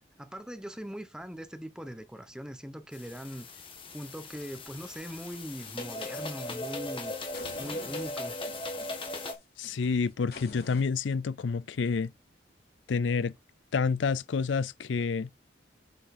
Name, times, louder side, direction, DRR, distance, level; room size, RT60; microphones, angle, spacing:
voice 1, 0.2-3.5 3.9-7.1 7.6-8.4, equal, 5° right, 0.9 m, -41 dB
sound 1, 2.9-9.3, left 2 dB, 30° left, 1.7 m, -38 dB
sound 2, 7.3-10.9, left 3 dB, 55° left, 3.4 m, -50 dB
voice 2, 9.6-12.1 12.9-13.3 13.7-15.3, left 5 dB, 80° left, 0.5 m, -28 dB
7.6 x 6.1 x 4.3 m
head